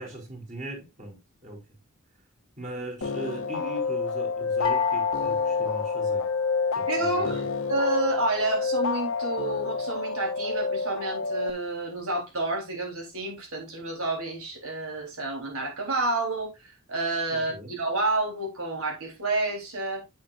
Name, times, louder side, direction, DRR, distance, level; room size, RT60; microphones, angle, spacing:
voice 1, 0.0-1.6 2.6-6.3 6.7-7.3 17.3-17.7, right 1 dB, 35° right, 4.0 m, -39 dB
sound 1, 3.0-11.5, left 4 dB, 60° left, 0.8 m, -28 dB
sound 2, 4.6-6.8, left 6 dB, 20° left, 0.4 m, -31 dB
voice 2, 6.9-7.4 7.7-20.0, right 2 dB, 70° right, 3.7 m, -29 dB
8.8 x 8.6 x 2.5 m
head